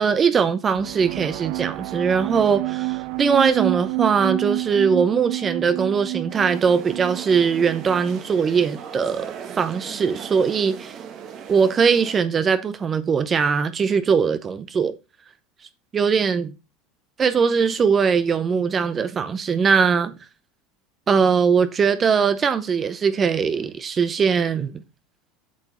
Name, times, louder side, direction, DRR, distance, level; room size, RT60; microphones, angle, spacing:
voice 1, 0.0-10.9 11.5-14.9 15.9-16.5 17.2-20.1 21.1-24.8, right 6 dB, 30° right, 0.8 m, -21 dB
sound 1, 0.7-8.3, right 26 dB, 65° right, 0.5 m, -29 dB
sound 2, 6.3-12.2, right 8 dB, 45° right, 1.5 m, -38 dB
7.5 x 6.0 x 4.4 m
supercardioid pair, 115°, 0 cm